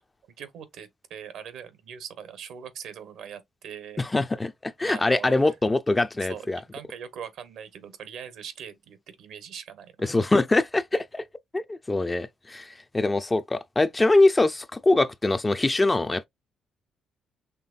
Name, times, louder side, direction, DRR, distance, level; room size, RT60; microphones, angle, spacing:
voice 1, 0.4-4.0 4.8-5.5 6.3-10.1, right 8 dB, 80° right, 0.9 m, -41 dB
voice 2, 4.0-6.6 10.0-11.3 11.5-16.3, left 2 dB, 20° left, 0.4 m, -23 dB
5.7 x 3.1 x 2.4 m
cardioid pair, 90°, 0 cm